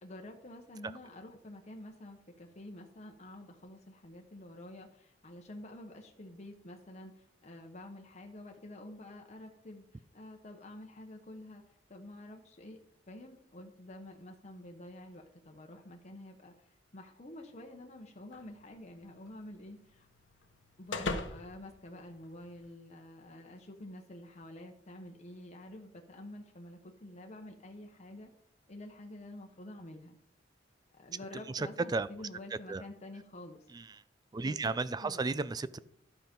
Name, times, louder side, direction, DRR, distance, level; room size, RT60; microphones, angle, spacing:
voice 1, 0.0-11.6 11.9-12.8 13.1-20.1 20.8-28.3 28.7-30.2 30.9-33.7 34.4-34.8 35.0-35.3, left 1 dB, 40° left, 2 dB, 1.0 m, -49 dB
sound 1, 18.3-22.7, left 3 dB, 80° left, 1.1 m, -43 dB
voice 2, 31.5-32.1 32.7-32.8 33.7-34.0 34.3-35.8, right 3 dB, 20° right, 16 dB, 0.3 m, -34 dB
11.0 x 5.9 x 5.3 m, 0.70 s
head